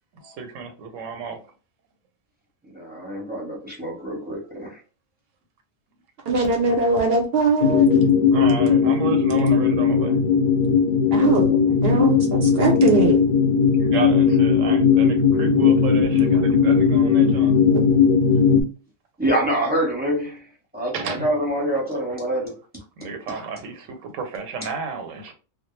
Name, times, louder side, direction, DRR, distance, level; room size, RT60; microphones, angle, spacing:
voice 1, 0.1-1.4 8.3-10.2 12.5-12.7 13.8-17.5 20.9-21.3 23.0-25.3, right 5 dB, 85° right, 1.0 m, -32 dB
voice 2, 2.6-4.8 11.1-11.6 19.2-22.6, right 1 dB, 10° right, 0.7 m, -26 dB
voice 3, 6.3-8.1 11.1-11.4 11.8-13.2, right 4 dB, 60° right, 0.7 m, -21 dB
sound 1, 7.6-18.6, left 6 dB, 65° left, 0.4 m, -18 dB
2.2 x 2.0 x 3.0 m
omnidirectional pair, 1.3 m